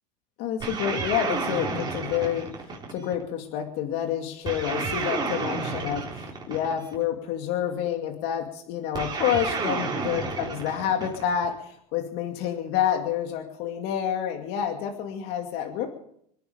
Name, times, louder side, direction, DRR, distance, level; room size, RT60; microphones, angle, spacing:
voice 1, 0.4-2.5 2.9-15.9, left 9 dB, 60° left, 3 dB, 2.4 m, -28 dB
sound 1, 0.6-3.2 4.4-7.0 8.9-11.5, right 4 dB, 20° right, 3.8 m, -31 dB
27.0 x 9.5 x 5.1 m, 0.69 s
supercardioid pair, 120°, 19 cm